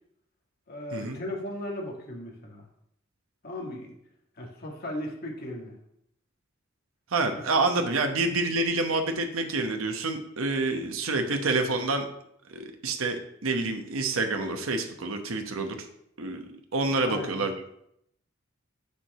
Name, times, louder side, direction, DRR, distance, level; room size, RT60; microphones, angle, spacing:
voice 1, 0.7-2.7 3.4-3.9 4.4-5.8 7.8-7.9 17.0-17.5, left 1 dB, 50° left, -1 dB, 2.0 m, -37 dB
voice 2, 7.1-12.1 12.5-15.9 16.2-17.5, right 3 dB, 90° right, 5 dB, 1.0 m, -28 dB
7.2 x 4.8 x 6.6 m, 0.74 s
head